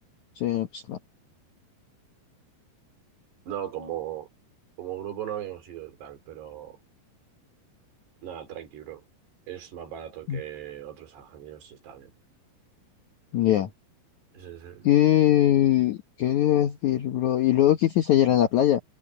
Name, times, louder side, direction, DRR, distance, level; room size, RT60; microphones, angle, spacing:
voice 1, 0.4-1.0 10.3-10.4 13.3-13.7 14.8-18.8, left 12 dB, 70° left, 1.8 m, -21 dB
voice 2, 3.5-4.3 4.8-6.8 8.2-9.0 9.5-12.1 14.3-14.9, right 11 dB, 70° right, 5.7 m, -38 dB
omnidirectional pair, 4.9 m